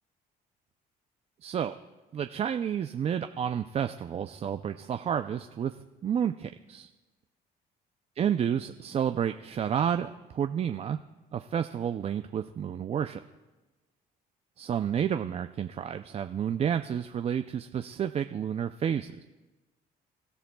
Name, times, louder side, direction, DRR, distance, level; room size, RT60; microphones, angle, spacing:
voice 1, 1.4-1.7 2.1-5.8 6.0-6.9 8.2-11.0 11.3-13.2 14.6-19.2, right 8 dB, 35° right, 8 dB, 0.5 m, -30 dB
28.0 x 14.0 x 2.3 m, 1.2 s
cardioid pair, 110°, 17 cm